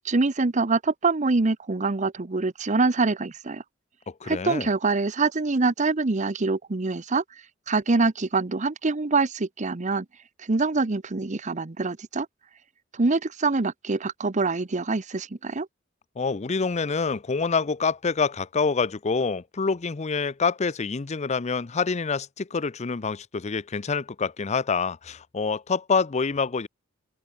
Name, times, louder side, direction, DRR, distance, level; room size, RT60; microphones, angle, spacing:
voice 1, 0.0-3.6 4.2-7.2 7.7-10.1 10.4-12.3 12.9-15.7, right 3 dB, 35° right, 0.8 m, -25 dB
voice 2, 4.1-4.7 16.2-26.7, left 4 dB, 35° left, 0.6 m, -26 dB
open air
head